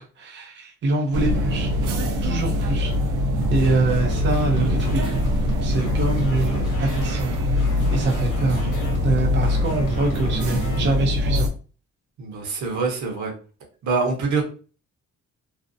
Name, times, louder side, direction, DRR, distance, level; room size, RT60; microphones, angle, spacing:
voice 1, 0.0-1.7 2.2-2.9 3.5-5.0 5.6-8.7 9.0-11.5, right 2 dB, 40° right, 0 dB, 0.5 m, -25 dB
sound 1, 1.1-11.5, left 1 dB, 85° right, 0.6 m, -23 dB
sound 2, 3.4-10.8, left 2 dB, 90° left, 0.9 m, -38 dB
voice 2, 12.2-13.3 13.8-14.4, right 4 dB, 70° right, 1 dB, 1.0 m, -24 dB
2.6 x 2.0 x 2.5 m, 0.38 s
cardioid pair, 90°, 30 cm